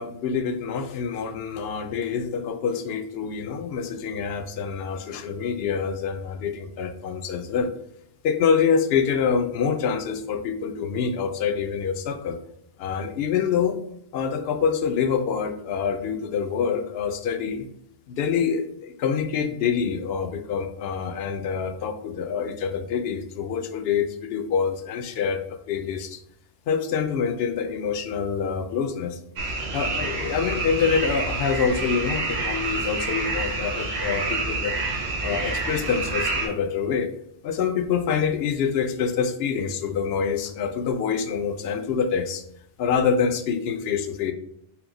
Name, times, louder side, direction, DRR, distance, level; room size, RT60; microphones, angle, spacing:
voice 1, 0.0-7.7 8.2-12.4 12.8-13.8 14.1-17.7 18.1-26.2 26.7-29.2 29.7-34.7 35.2-37.1 37.4-42.4 42.8-44.3, left 6 dB, 75° left, 7 dB, 0.8 m, -26 dB
sound 1, 29.4-36.5, right 3 dB, 80° right, 1.1 m, -28 dB
4.4 x 2.1 x 3.9 m, 0.74 s
omnidirectional pair, 1.0 m